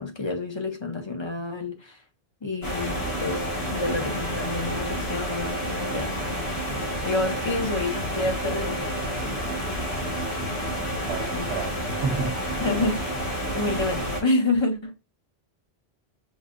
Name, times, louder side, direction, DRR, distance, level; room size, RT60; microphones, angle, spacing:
voice 1, 0.0-2.0 2.4-6.2 7.0-9.0 9.2-10.1 11.3-11.5 12.6-13.0 13.5-14.9, left 2 dB, 30° left, 0.6 m, -29 dB
sound 1, 2.6-14.2, equal, 70° left, 1.7 m, -29 dB
voice 2, 11.0-12.7, right 4 dB, 75° right, 1.0 m, -31 dB
6.2 x 2.5 x 2.5 m
omnidirectional pair, 1.1 m